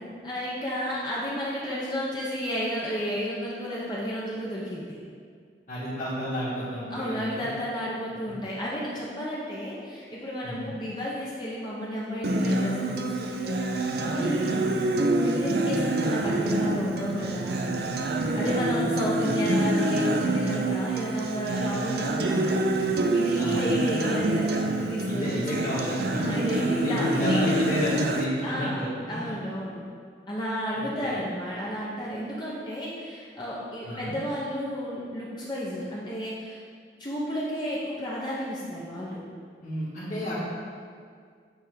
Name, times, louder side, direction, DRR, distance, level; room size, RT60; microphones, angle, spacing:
voice 1, 0.0-5.0 6.9-14.8 15.2-17.7 18.3-25.7 26.1-27.4 28.4-28.8 29.1-29.8 30.3-36.6 37.0-39.2, equal, 25° left, -6 dB, 0.8 m, -32 dB
voice 2, 5.7-7.5 10.4-10.7 18.4-18.7 23.3-23.7 25.0-28.9 29.2-29.3 30.7-31.2 33.8-34.1 39.6-40.4, equal, 45° left, -14 dB, 1.8 m, -31 dB
Acoustic guitar, 12.2-28.2, right 2 dB, 60° right, 0.6 m, -26 dB
8.9 x 3.5 x 5.2 m, 2.1 s
head